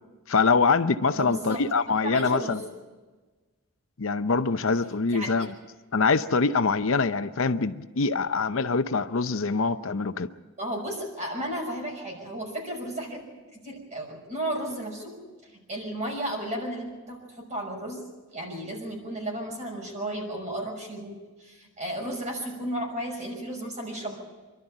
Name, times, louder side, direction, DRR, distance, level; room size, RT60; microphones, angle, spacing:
voice 1, 0.3-2.6 4.0-5.5 5.9-10.3, left 4 dB, 65° left, 0.7 m, -24 dB
voice 2, 1.1-2.6 5.1-5.5 10.6-13.2 13.5-15.2 15.4-18.0 18.3-24.2, right 1 dB, 35° right, 5.9 m, -34 dB
27.0 x 12.5 x 8.9 m
head